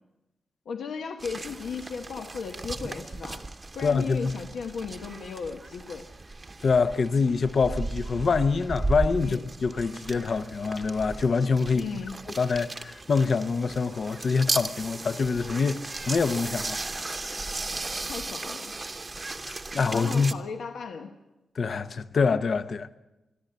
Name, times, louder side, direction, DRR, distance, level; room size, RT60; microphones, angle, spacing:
voice 1, 0.6-3.4 3.7-6.0 9.2-9.5 11.7-12.2 18.1-18.7 19.7-21.1, left 5 dB, 85° left, 1.1 m, -36 dB
sound 1, 1.2-20.3, right 3 dB, 25° right, 0.9 m, -36 dB
voice 2, 3.8-4.3 6.6-11.9 12.3-15.8 16.1-16.8 17.1-17.5 19.5-20.3 21.6-22.9, left 4 dB, 50° left, 0.8 m, -25 dB
22.0 x 13.5 x 9.4 m
wide cardioid pair, 115°, 0 cm